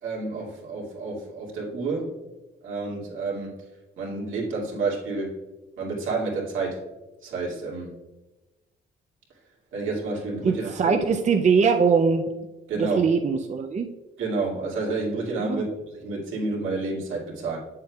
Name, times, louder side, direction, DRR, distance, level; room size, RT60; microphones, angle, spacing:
voice 1, 0.0-2.2 2.6-3.6 4.0-5.4 5.8-6.8 7.2-8.0 9.7-10.9 12.7-13.0 14.2-17.6, right 3 dB, 80° right, -4 dB, 2.5 m, -29 dB
voice 2, 10.4-12.3 12.8-13.9 15.4-15.7, right 5 dB, 35° right, 5 dB, 0.6 m, -22 dB
7.7 x 7.5 x 2.4 m, 1.1 s
cardioid pair, 90°, 20 cm